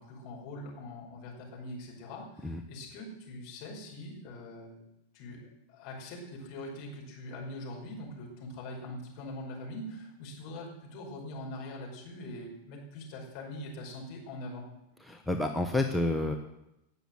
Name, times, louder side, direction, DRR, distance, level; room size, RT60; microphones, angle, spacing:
voice 1, 0.0-4.8 5.1-14.7, left 1 dB, 45° left, -1 dB, 5.3 m, -43 dB
voice 2, 15.0-16.3, left 2 dB, ahead, 2 dB, 1.1 m, -29 dB
18.5 x 7.0 x 7.8 m, 0.89 s
figure-of-eight pair, 90°, 0 cm